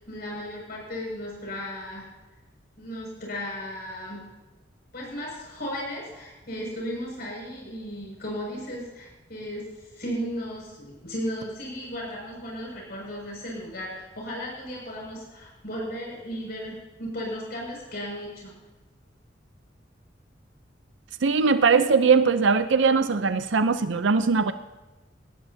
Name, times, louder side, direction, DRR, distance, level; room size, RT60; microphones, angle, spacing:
voice 1, 0.1-2.1 2.8-4.2 4.9-18.5, equal, 55° left, -3 dB, 6.1 m, -35 dB
voice 2, 21.2-24.5, right 5 dB, 80° right, 10 dB, 0.6 m, -20 dB
20.0 x 18.0 x 2.8 m, 1.1 s
head